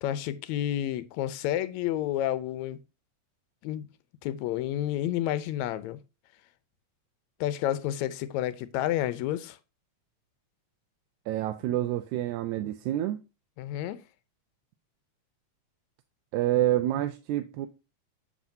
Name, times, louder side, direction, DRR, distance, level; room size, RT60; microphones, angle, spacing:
voice 1, 0.0-2.8 3.6-3.9 4.2-6.0 7.4-9.6 13.6-14.0, left 12 dB, 80° left, 2.0 m, -30 dB
voice 2, 11.3-13.2 16.3-17.7, right 13 dB, 90° right, 2.0 m, -28 dB
7.4 x 7.3 x 2.7 m
omnidirectional pair, 3.3 m